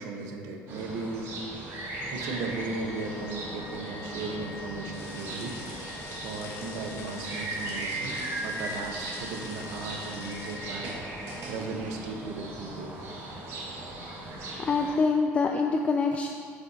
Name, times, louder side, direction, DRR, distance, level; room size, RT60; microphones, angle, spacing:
voice 1, 0.0-1.4 2.1-5.6 6.0-10.9 11.5-12.9, right 3 dB, 85° right, 3 dB, 0.9 m, -36 dB
sound 1, 0.7-14.9, right 2 dB, 55° right, 1.7 m, -38 dB
Wind instrument woodwind instrument, 2.0-12.1, left 4 dB, 80° left, 1.0 m, -48 dB
sound 2, 4.9-10.6, left 3 dB, 55° left, 1.4 m, -45 dB
voice 2, 14.6-16.3, left 4 dB, 20° left, 3 dB, 0.3 m, -25 dB
8.2 x 7.9 x 2.8 m, 2.3 s
cardioid pair, 150°, 6 cm